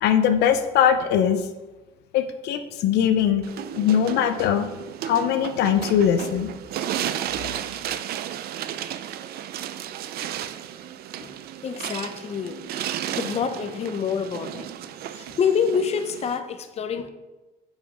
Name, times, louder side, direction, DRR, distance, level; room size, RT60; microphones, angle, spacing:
voice 1, 0.0-1.5 2.1-3.4 3.8-4.7 5.0-6.5, left 9 dB, 80° left, 8 dB, 0.6 m, -21 dB
sound 1, 3.4-16.4, right 10 dB, 65° right, 0.5 m, -33 dB
voice 2, 11.6-12.6 13.1-14.8 15.1-17.1, left 6 dB, 40° left, 9 dB, 0.7 m, -27 dB
7.4 x 5.1 x 4.9 m, 1.1 s
cardioid pair, 110°, 17 cm